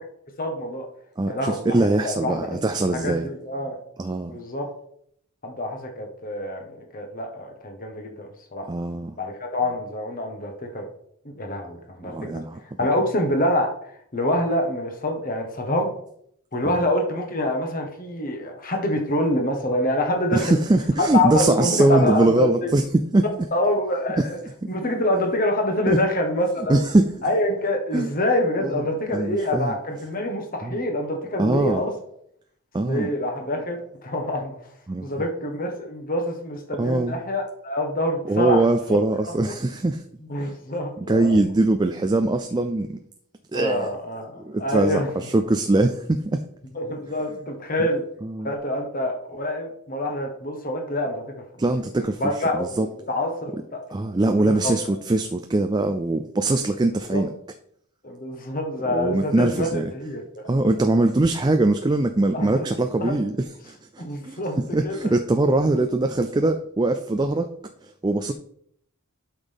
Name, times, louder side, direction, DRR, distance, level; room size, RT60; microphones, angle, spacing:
voice 1, 0.4-0.9 1.3-2.7 2.9-3.8 4.3-4.7 5.4-8.7 9.2-10.8 11.2-12.1 12.8-13.7 14.1-15.9 16.5-20.6 21.1-22.5 23.5-24.4 24.7-26.8 27.2-31.9 32.8-34.5 35.0-38.6 38.9-39.0 40.3-41.4 43.5-45.3 46.7-48.0 48.4-51.3 52.0-53.8 54.6-54.7 57.1-57.2 58.0-60.8 62.3-62.7 63.0-63.1 64.0-64.6 64.8-65.1, left 1 dB, 40° left, 3 dB, 1.3 m, -26 dB
voice 2, 1.2-3.3 4.0-4.4 8.7-9.2 12.1-12.6 16.8-16.9 20.3-23.3 24.2-24.3 24.6-24.7 25.9-26.0 26.7-27.1 27.9-28.1 29.1-29.7 30.6-30.8 31.4-31.8 32.7-33.1 34.9-35.1 36.8-37.2 38.3-40.0 40.4-40.5 41.1-43.0 43.5-43.9 44.4-46.4 48.2-48.5 51.6-52.2 52.5-52.9 53.9-57.3 58.9-59.9 60.5-63.3 63.6-64.4 64.7-67.5 67.8-68.3, right 2 dB, 20° right, 7 dB, 0.4 m, -22 dB
12.0 x 5.7 x 3.5 m, 0.69 s
head